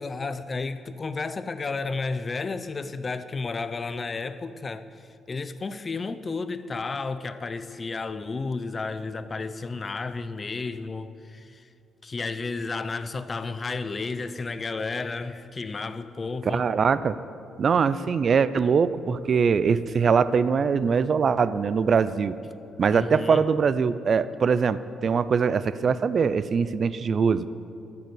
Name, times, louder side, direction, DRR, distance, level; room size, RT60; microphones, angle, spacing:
voice 1, 0.0-11.7 12.0-16.6 22.9-23.5, left 4 dB, 35° left, 13 dB, 0.6 m, -32 dB
voice 2, 16.4-17.2 17.6-22.4 22.8-27.5, right 6 dB, 50° right, 15 dB, 0.5 m, -22 dB
13.5 x 6.9 x 7.9 m, 2.6 s
cardioid pair, 90°, 0 cm